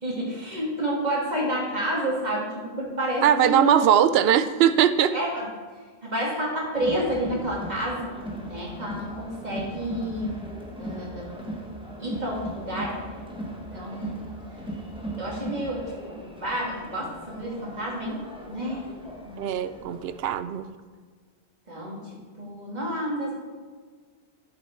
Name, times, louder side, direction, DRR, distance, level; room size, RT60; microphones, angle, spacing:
voice 1, 0.0-3.9 5.1-5.5 6.0-8.1 8.4-10.3 10.8-11.3 12.0-13.0 13.7-14.2 15.2-18.2 18.5-18.9 19.2-19.5 21.7-22.0 22.4-23.4, right 1 dB, 45° right, -3 dB, 2.3 m, -29 dB
voice 2, 3.2-5.1 19.4-20.6, right 10 dB, 75° right, 12 dB, 0.8 m, -20 dB
Crowd, 6.7-20.3, right 1 dB, 5° right, 1.2 m, -38 dB
10.0 x 7.2 x 4.5 m, 1.5 s
omnidirectional pair, 1.0 m